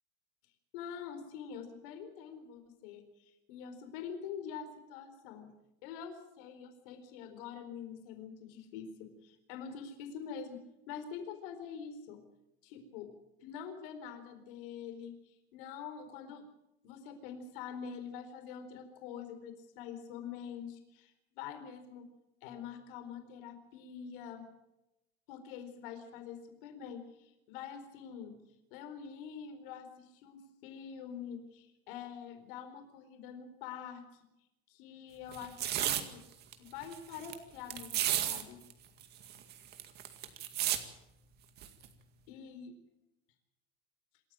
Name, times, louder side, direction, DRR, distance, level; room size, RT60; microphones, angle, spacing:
voice 1, 0.7-5.5 5.8-10.6 10.9-12.2 12.6-13.1 13.4-16.4 16.8-22.1 22.4-24.5 25.3-28.4 28.7-34.0 34.7-36.2 36.6-38.6 42.3-42.7, left 7 dB, 60° left, 7 dB, 4.4 m, -45 dB
sound 1, 35.3-36.0 36.5-36.6 36.8-37.3 37.7-38.4 38.7-38.8 39.0-40.8 41.6-41.9, right 11 dB, 35° right, 2.1 m, -33 dB
27.0 x 14.0 x 7.6 m, 0.92 s
supercardioid pair, 160°, 30 cm